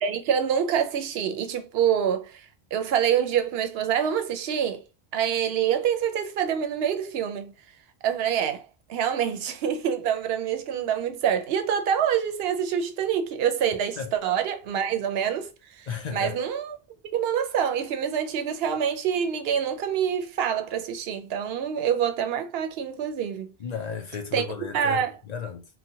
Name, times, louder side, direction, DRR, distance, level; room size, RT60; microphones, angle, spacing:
voice 1, 0.0-2.4 2.7-4.8 5.1-7.5 8.0-8.6 8.9-15.5 15.8-16.8 17.1-23.5 24.3-24.5 24.7-25.1, right 8 dB, 75° right, 0.8 m, -26 dB
voice 2, 15.9-16.4 23.6-25.7, left 6 dB, 55° left, 0.5 m, -34 dB
3.9 x 2.1 x 2.7 m
omnidirectional pair, 1.0 m